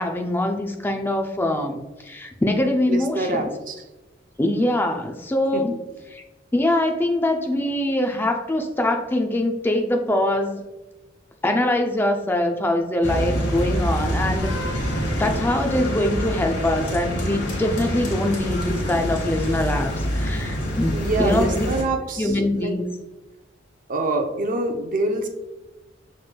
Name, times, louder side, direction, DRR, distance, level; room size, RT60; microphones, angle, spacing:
voice 1, 0.0-3.5 4.4-5.8 6.1-6.2 6.5-10.6 11.4-14.8 15.2-21.7 22.2-22.9, left 1 dB, 10° left, 4 dB, 0.4 m, -23 dB
voice 2, 2.9-3.8 5.5-5.6 20.9-22.8 23.9-25.3, right 2 dB, 45° right, 4 dB, 0.6 m, -25 dB
sound 1, 13.0-21.8, equal, 80° left, 1.1 m, -26 dB
6.2 x 3.2 x 2.2 m, 1.1 s
head